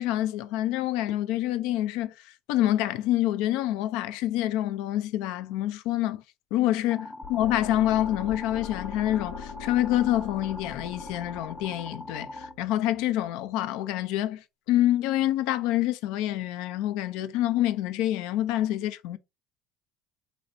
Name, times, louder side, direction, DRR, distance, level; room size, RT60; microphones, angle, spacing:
voice 1, 0.0-2.1 2.5-6.2 6.5-19.2, left 13 dB, 70° left, 0.4 m, -27 dB
sound 1, 6.9-12.5, left 2 dB, 15° left, 0.7 m, -42 dB
sound 2, 7.2-13.3, left 7 dB, 85° left, 0.8 m, -42 dB
4.0 x 3.3 x 2.6 m
hypercardioid pair, 65°, 0 cm